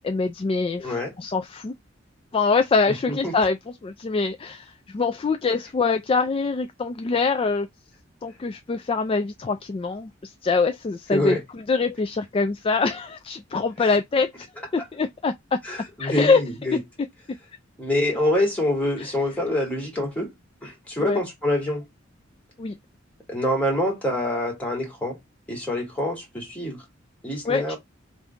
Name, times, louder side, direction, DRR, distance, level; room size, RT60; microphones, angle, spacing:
voice 1, 0.0-1.7 2.3-3.6 3.8-7.7 8.2-14.3 14.7-15.6 16.0-16.4 16.7-16.8 19.0-19.1 21.0-21.2 22.6-22.7 27.4-27.7, left 4 dB, 30° left, 0.3 m, -24 dB
voice 2, 0.8-1.1 3.1-3.3 11.1-11.4 15.6-16.8 17.8-20.3 20.6-21.8 23.3-25.2 25.5-26.8 27.2-27.8, left 1 dB, 10° left, 2.1 m, -26 dB
3.5 x 2.6 x 4.5 m
head